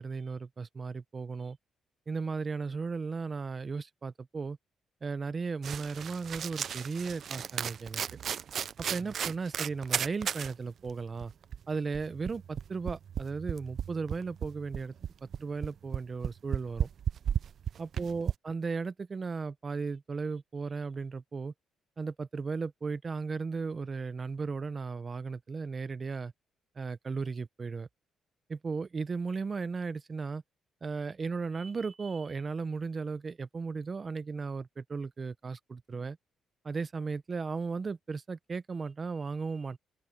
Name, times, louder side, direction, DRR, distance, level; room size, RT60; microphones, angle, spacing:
voice 1, 0.0-1.6 2.1-4.6 5.0-8.0 8.9-11.3 11.7-14.9 15.2-16.9 17.8-21.5 22.0-26.3 26.8-27.9 28.5-30.4 30.8-36.2 36.6-39.8, right 4 dB, 35° right, 0.9 m, -36 dB
sound 1, 5.6-10.5 10.9-11.0 11.2-18.3, right 8 dB, 60° right, 0.6 m, -35 dB
open air
cardioid pair, 90°, 0 cm